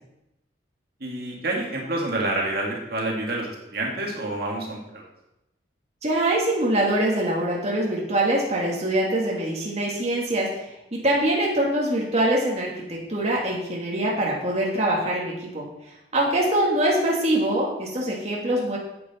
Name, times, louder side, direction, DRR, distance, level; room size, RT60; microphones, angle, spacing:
voice 1, 1.0-5.1, right 2 dB, 55° right, -1 dB, 1.9 m, -28 dB
voice 2, 6.0-10.7 11.0-15.7 16.1-18.8, right 1 dB, 35° right, -3 dB, 1.8 m, -24 dB
9.7 x 7.9 x 4.2 m, 0.88 s
head